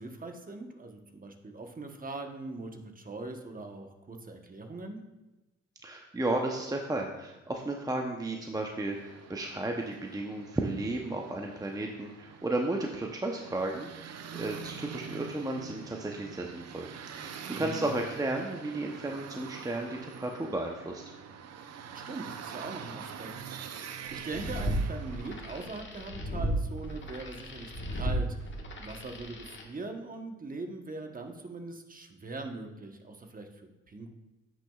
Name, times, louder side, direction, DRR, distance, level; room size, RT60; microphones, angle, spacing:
voice 1, 0.0-5.0 17.5-17.9 21.9-23.3 24.1-34.1, right 2 dB, 30° right, 4 dB, 1.1 m, -41 dB
voice 2, 5.8-21.0, right 2 dB, 10° right, 1 dB, 0.8 m, -34 dB
sound 1, 8.8-25.8, right 7 dB, 60° right, 0.7 m, -45 dB
sound 2, 24.2-29.6, right 1 dB, 40° left, 1.5 m, -35 dB
9.7 x 6.2 x 2.4 m, 1.0 s
supercardioid pair, 60°, 29 cm